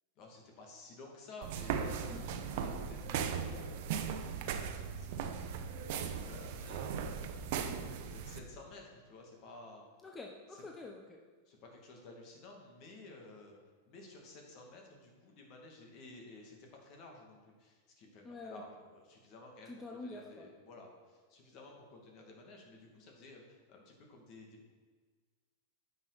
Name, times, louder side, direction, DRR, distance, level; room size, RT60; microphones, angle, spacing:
voice 1, 0.2-2.1 2.5-9.8 10.5-10.6 11.5-13.5 13.9-24.7, left 2 dB, 45° left, 0 dB, 2.2 m, -54 dB
sound 1, 1.4-8.4, right 7 dB, 60° right, 0.8 m, -38 dB
voice 2, 2.1-2.4 10.0-11.2 18.2-18.6 19.7-20.5, left 2 dB, 15° left, 1 dB, 0.8 m, -47 dB
9.8 x 5.7 x 4.1 m, 1.5 s
hypercardioid pair, 115°, 0 cm